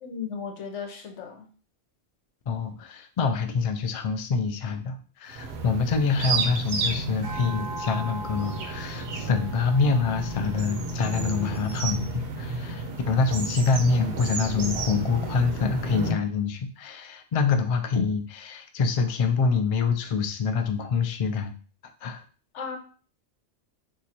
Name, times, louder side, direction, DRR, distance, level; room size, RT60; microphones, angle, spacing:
voice 1, 0.0-1.5 22.5-22.8, left 6 dB, 90° left, 3 dB, 1.1 m, -35 dB
voice 2, 2.5-21.5 22.0-22.2, left 5 dB, 65° left, 6 dB, 0.3 m, -26 dB
sound 1, 5.3-16.1, right 3 dB, 60° right, 0.8 m, -32 dB
sound 2, 7.2-11.8, right 2 dB, 80° right, 1.0 m, -41 dB
2.8 x 2.5 x 4.2 m, 0.39 s
omnidirectional pair, 1.2 m